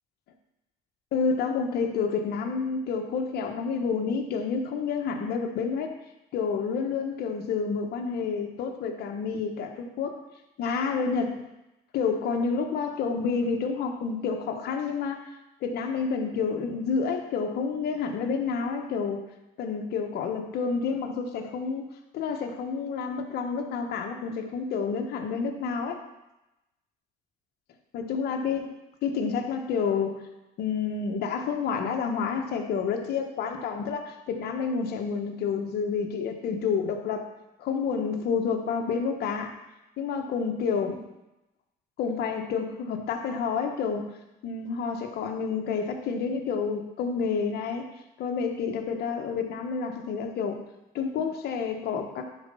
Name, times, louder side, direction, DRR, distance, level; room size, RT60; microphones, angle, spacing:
voice 1, 1.1-6.0 6.3-10.2 10.6-11.4 11.9-15.3 15.6-19.2 19.6-21.8 22.1-26.0 27.9-28.7 29.0-30.2 30.6-37.3 37.6-39.6 40.0-41.0 42.0-44.2 44.4-47.9 48.2-50.6 50.9-52.3, left 5 dB, 70° left, 4 dB, 1.2 m, -29 dB
10.5 x 4.2 x 5.5 m, 0.96 s
cardioid pair, 110°, 17 cm